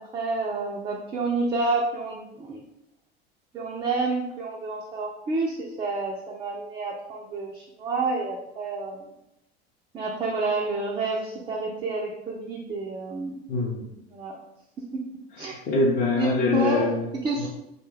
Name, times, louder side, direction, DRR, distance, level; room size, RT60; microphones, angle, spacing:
voice 1, 0.0-2.6 3.5-9.1 9.9-13.4 14.1-14.4 14.9-15.0 15.4-15.6 16.2-16.9 17.2-17.5, right 3 dB, 15° right, -2 dB, 0.3 m, -29 dB
voice 2, 13.5-14.0 15.5-17.1 17.4-17.5, left 3 dB, 30° left, -4 dB, 0.6 m, -24 dB
3.1 x 2.1 x 3.1 m, 0.85 s
figure-of-eight pair, 70°, 31 cm